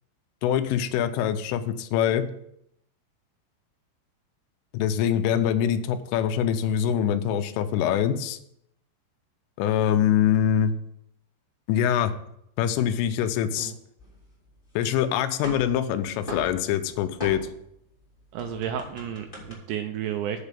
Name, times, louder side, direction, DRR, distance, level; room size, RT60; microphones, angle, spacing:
voice 1, 0.4-2.3 4.7-8.4 9.6-10.7 11.7-12.1 12.6-13.7 14.8-17.5, left 9 dB, 85° left, 9 dB, 3.2 m, -24 dB
sound 1, 14.0-14.9 15.2-17.7 18.0-19.5, equal, 15° left, 2.3 m, -40 dB
voice 2, 18.3-20.4, right 9 dB, 85° right, 6 dB, 2.4 m, -32 dB
8.2 x 6.0 x 6.8 m, 0.75 s
omnidirectional pair, 5.7 m